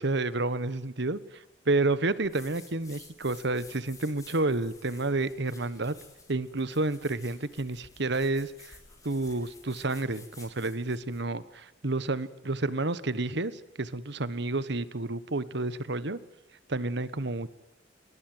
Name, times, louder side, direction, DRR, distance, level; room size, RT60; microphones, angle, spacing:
voice 1, 0.0-5.9 6.3-8.8 9.0-16.2 16.7-17.5, right 2 dB, 65° right, 16 dB, 1.4 m, -30 dB
sound 1, 2.2-11.3, left 4 dB, 20° left, 6.8 m, -53 dB
28.0 x 22.5 x 8.0 m, 0.85 s
head